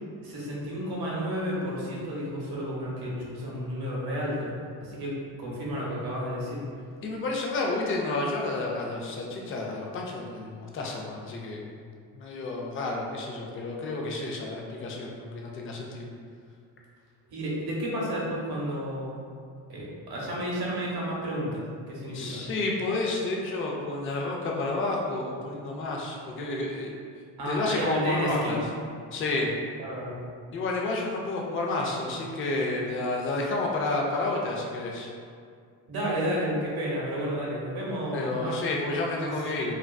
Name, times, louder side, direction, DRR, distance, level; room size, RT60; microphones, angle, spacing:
voice 1, 0.2-4.5 4.8-6.6 17.3-19.2 19.7-22.4 27.4-28.6 29.8-30.2 35.9-38.6 39.1-39.3, equal, 50° right, -5 dB, 0.9 m, -31 dB
voice 2, 7.0-11.7 12.1-16.1 22.1-26.9 27.5-28.6 29.1-29.5 30.5-35.1 38.1-39.8, left 2 dB, 30° left, -1 dB, 0.4 m, -30 dB
2.4 x 2.3 x 2.2 m, 2.2 s
supercardioid pair, 75°, 49 cm